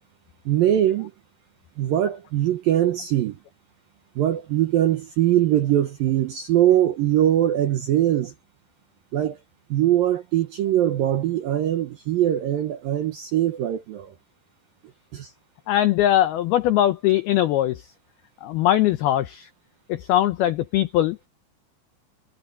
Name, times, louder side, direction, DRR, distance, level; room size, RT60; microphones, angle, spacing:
voice 1, 0.5-1.1 1.8-3.4 4.2-8.3 9.1-9.4 9.7-14.1 15.1-15.3, right 12 dB, 75° right, 2.1 m, -22 dB
voice 2, 15.7-17.9 18.4-19.5 19.9-21.2, left 13 dB, 85° left, 2.2 m, -21 dB
omnidirectional pair, 5.6 m